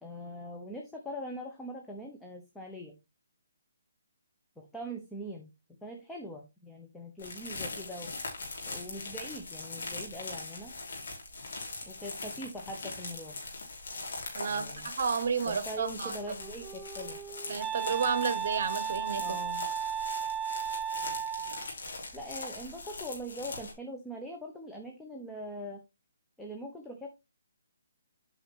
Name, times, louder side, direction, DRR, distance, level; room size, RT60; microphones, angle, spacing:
voice 1, 0.0-3.0 4.6-8.1 8.6-10.7 11.9-13.4 14.5-14.9 15.4-17.2 19.2-19.7 22.1-25.8 26.4-27.1, equal, 5° left, 0.9 m, -42 dB
sound 1, 7.2-23.7, left 3 dB, 65° left, 4.0 m, -41 dB
voice 2, 14.3-16.4 17.5-19.4, right 5 dB, 55° right, 1.3 m, -32 dB
Wind instrument woodwind instrument, 16.4-21.7, right 8 dB, 15° right, 0.3 m, -35 dB
8.6 x 5.5 x 3.4 m
hypercardioid pair, 150°, 0 cm